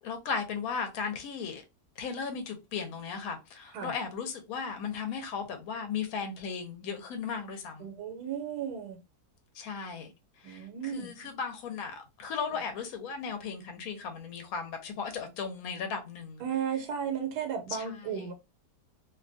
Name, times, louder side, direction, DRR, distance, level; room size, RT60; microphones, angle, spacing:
voice 1, 0.0-1.6 2.0-7.9 9.5-16.4 17.7-18.3, left 6 dB, 70° left, 1.1 m, -36 dB
voice 2, 7.8-9.0 10.4-11.3 16.4-18.3, right 8 dB, 80° right, 1.2 m, -34 dB
2.8 x 2.2 x 2.5 m
omnidirectional pair, 1.7 m